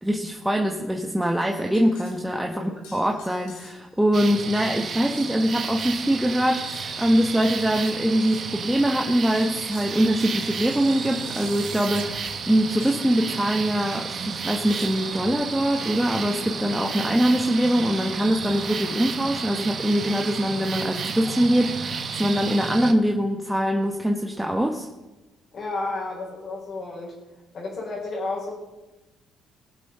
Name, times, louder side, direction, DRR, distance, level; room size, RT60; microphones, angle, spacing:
voice 1, 0.0-24.9, equal, 5° right, 1 dB, 1.2 m, -23 dB
sound 1, 1.2-2.2 2.8-4.0 4.5-5.3 5.9-6.1 6.6-7.0 7.6-8.4 9.2-9.9 10.7-11.1 11.3-11.6 12.2-12.4 12.8-13.0 13.9-14.0 14.7-15.1, left 4 dB, 85° left, 2.8 m, -49 dB
sound 2, 4.1-22.9, right 5 dB, 50° right, 1.1 m, -32 dB
sound 3, 9.0-12.5, right 10 dB, 85° right, 1.0 m, -46 dB
voice 2, 25.5-27.1 27.5-28.5, left 3 dB, 55° left, -4 dB, 4.3 m, -31 dB
19.0 x 7.5 x 3.9 m, 1.1 s
supercardioid pair, 65°, 0 cm